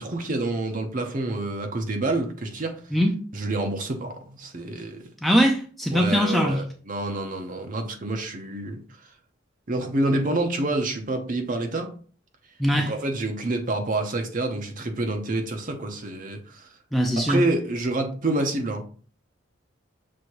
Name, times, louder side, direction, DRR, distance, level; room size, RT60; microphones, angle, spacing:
voice 1, 0.0-2.8 3.3-5.0 5.9-8.8 9.7-11.9 12.7-16.7 17.3-18.8, right 2 dB, 40° right, 0.7 m, -28 dB
voice 2, 5.2-6.6 12.6-12.9 16.9-17.4, equal, ahead, 0.4 m, -21 dB
6.2 x 2.6 x 3.0 m
head